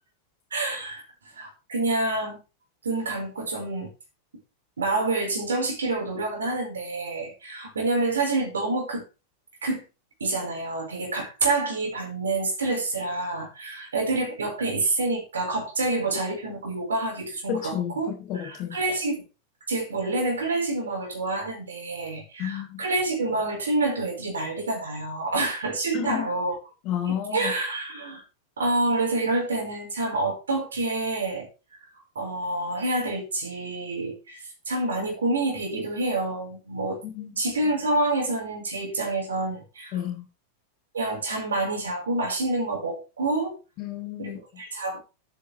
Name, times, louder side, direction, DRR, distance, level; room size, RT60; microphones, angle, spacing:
voice 1, 0.5-1.0 1.3-2.4 2.8-3.9 4.8-9.0 9.6-9.8 10.2-18.1 18.3-19.2 19.7-26.6 27.1-28.2 28.6-31.5 32.1-37.0 37.4-39.9 40.9-43.6 44.2-45.0, right 2 dB, 70° right, 4.8 m, -27 dB
voice 2, 17.5-18.8 22.4-22.8 25.9-26.2 26.8-27.5 37.0-37.4 39.9-40.3 43.8-44.4, left 9 dB, 40° left, 3.5 m, -31 dB
12.0 x 8.5 x 3.4 m
figure-of-eight pair, 90°, 0 cm